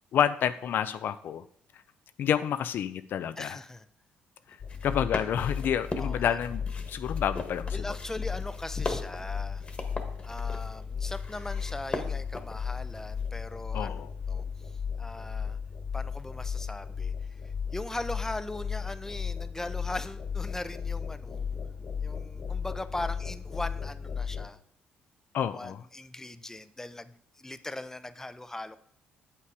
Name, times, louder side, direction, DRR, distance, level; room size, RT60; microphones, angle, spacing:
voice 1, 0.1-1.4 2.2-3.6 4.8-7.8 13.7-14.1 25.3-25.8, left 9 dB, 65° left, 12 dB, 0.4 m, -29 dB
voice 2, 3.4-3.9 6.0-6.2 7.7-9.6 10.2-14.4 15.0-15.6 15.9-17.1 17.7-21.6 22.0-24.6 25.5-28.8, left 2 dB, 10° left, 13 dB, 0.6 m, -39 dB
sound 1, 4.5-13.3 13.9-14.5, left 2 dB, 30° left, 1.4 m, -40 dB
sound 2, 4.6-24.4, left 6 dB, 45° left, 1.4 m, -35 dB
8.1 x 5.8 x 4.8 m, 0.64 s
supercardioid pair, 70°, 4 cm